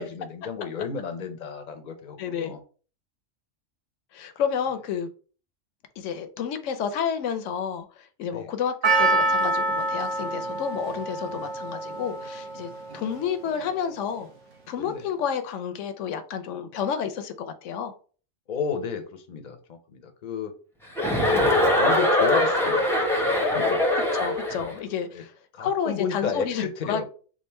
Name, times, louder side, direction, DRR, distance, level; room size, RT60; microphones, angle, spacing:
voice 1, 0.0-2.6 8.3-8.5 14.8-15.1 18.5-20.5 21.3-22.9 23.3-23.8 25.1-25.2 25.5-27.0, left 6 dB, 45° left, 6 dB, 0.7 m, -32 dB
voice 2, 2.2-2.5 4.1-5.1 6.0-14.3 14.7-17.9 24.1-25.3 25.6-27.0, left 7 dB, 70° left, 9 dB, 0.9 m, -30 dB
Percussion, 8.8-13.2 13.5-13.6, right 2 dB, 50° right, 1.0 m, -26 dB
Chuckle chortle, 21.0-24.7, left 1 dB, 5° left, 0.6 m, -22 dB
3.5 x 2.5 x 4.3 m, 0.39 s
omnidirectional pair, 1.3 m